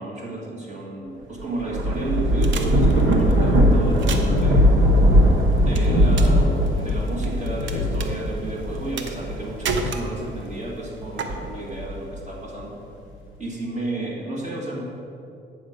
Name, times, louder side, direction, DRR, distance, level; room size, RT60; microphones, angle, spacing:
voice 1, 0.0-4.7 5.6-12.8 13.4-14.8, right 2 dB, 35° right, -3 dB, 1.9 m, -32 dB
Thunder / Rain, 1.4-10.3 10.9-12.2, equal, 90° right, 1.0 m, -20 dB
sound 1, 2.4-3.3 3.9-4.4 5.8-6.4 6.7-7.7 8.0-8.1 9.0-9.4 9.6-10.5 11.2-11.3, right 5 dB, 70° right, 0.8 m, -30 dB
sound 2, 3.6-10.7 11.7-11.8 12.1-12.3 13.0-13.1, left 5 dB, 85° left, 0.5 m, -30 dB
8.7 x 6.1 x 5.1 m, 2.6 s
cardioid pair, 90°, 20 cm